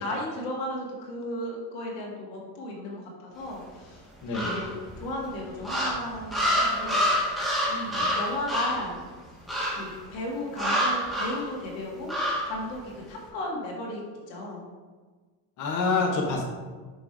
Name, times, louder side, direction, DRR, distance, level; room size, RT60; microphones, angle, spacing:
voice 1, 0.0-4.0 4.3-7.0 7.7-8.9 9.7-12.1 12.4-14.6, left 1 dB, 90° left, -2 dB, 1.7 m, -35 dB
voice 2, 4.2-4.6 7.9-8.1 15.6-16.4, left 4 dB, 45° left, 0 dB, 1.0 m, -27 dB
sound 1, 4.3-5.0 5.6-8.9 9.5-9.9 10.6-11.4 12.1-12.5, equal, ahead, 1.5 m, -27 dB
6.2 x 3.2 x 4.7 m, 1.4 s
cardioid pair, 120°, 41 cm